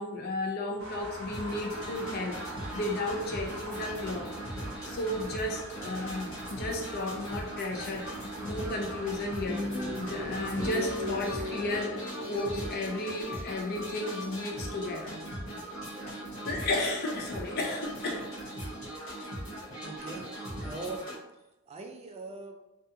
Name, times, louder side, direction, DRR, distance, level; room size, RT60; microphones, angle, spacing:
voice 1, 0.0-2.4 2.7-4.3 4.8-9.6 10.0-15.3 15.5-15.6 16.5-18.3, left 2 dB, 50° left, 1 dB, 0.4 m, -34 dB
sound 1, 0.8-11.8, right 1 dB, 85° right, 0.5 m, -44 dB
sound 2, 1.3-21.2, right 1 dB, 80° left, 0.8 m, -40 dB
sound 3, 9.4-14.6, left 1 dB, 25° left, 0.8 m, -37 dB
voice 2, 19.8-20.3 20.6-21.1 21.7-22.6, right 3 dB, 30° right, 3 dB, 0.3 m, -41 dB
2.3 x 2.3 x 2.7 m, 0.98 s
head